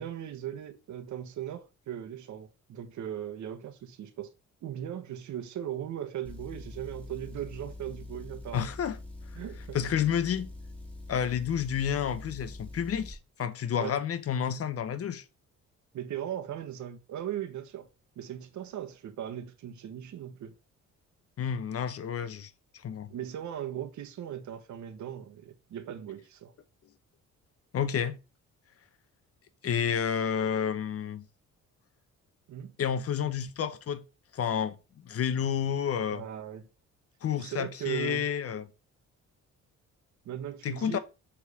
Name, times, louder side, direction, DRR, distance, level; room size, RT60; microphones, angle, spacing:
voice 1, 0.0-4.3 4.6-8.7 9.3-9.8 13.8-14.0 15.9-17.9 18.2-20.5 23.1-26.5 32.5-32.7 36.1-36.7 37.4-38.3 40.2-41.0, right 10 dB, 70° right, 1.2 m, -38 dB
Motor vehicle (road) / Engine, 6.2-13.2, left 2 dB, 5° left, 2.2 m, -44 dB
voice 2, 8.5-9.0 9.7-10.5 11.1-15.2 21.4-22.5 22.8-23.1 27.7-28.2 29.6-31.3 32.8-34.0 34.3-36.2 37.2-38.7 40.6-41.0, left 8 dB, 50° left, 0.9 m, -30 dB
7.0 x 3.7 x 4.8 m
cardioid pair, 90°, 30 cm